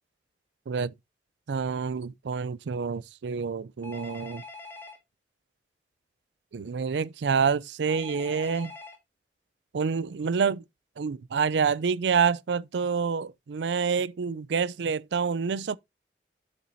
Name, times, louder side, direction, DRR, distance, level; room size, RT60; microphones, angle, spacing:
voice 1, 1.5-4.4 6.5-8.7 9.7-10.6 11.0-15.8, right 6 dB, 85° right, 0.4 m, -27 dB
Telephone, 3.8-5.0 7.9-9.0, left 3 dB, 15° left, 1.9 m, -43 dB
7.9 x 7.3 x 2.6 m
head